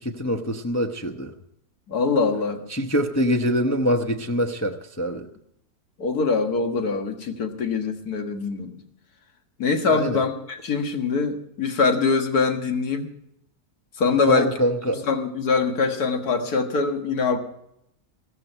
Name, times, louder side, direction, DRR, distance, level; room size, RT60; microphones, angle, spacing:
voice 1, 0.0-1.3 2.7-5.3 9.9-10.2 14.2-15.0, equal, 15° left, 3 dB, 0.8 m, -24 dB
voice 2, 1.9-2.6 6.0-8.8 9.6-13.1 14.0-14.5 14.9-17.4, left 4 dB, 75° left, 5 dB, 2.1 m, -23 dB
15.5 x 14.5 x 4.4 m, 0.77 s
omnidirectional pair, 1.7 m